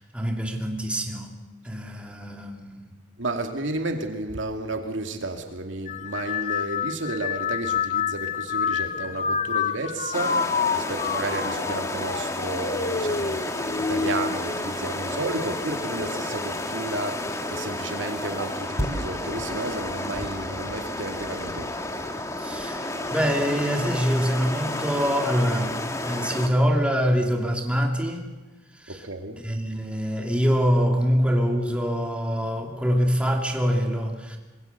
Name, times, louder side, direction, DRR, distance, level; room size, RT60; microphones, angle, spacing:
voice 1, 0.0-1.4 1.6-2.9 22.4-28.3 28.8-29.0 29.4-34.4, equal, 5° right, 1 dB, 2.5 m, -25 dB
voice 2, 3.2-21.7 28.9-29.4, right 2 dB, 80° right, 5 dB, 2.4 m, -32 dB
sound 1, 5.9-15.5 15.9-16.5 17.5-17.8, left 6 dB, 40° left, 0.7 m, -29 dB
sound 2, 10.1-26.5, left 1 dB, 15° left, 1.6 m, -31 dB
26.0 x 21.0 x 6.8 m, 1.2 s
head